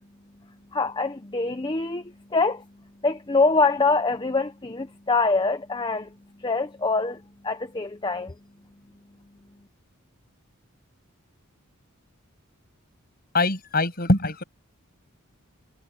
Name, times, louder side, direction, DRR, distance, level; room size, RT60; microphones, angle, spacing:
voice 1, 0.7-2.0 2.3-2.6 3.0-6.1 6.4-7.2 7.4-8.3, left 3 dB, 20° left, 0.7 m, -24 dB
voice 2, 13.3-14.4, left 2 dB, 45° left, 7.1 m, -22 dB
head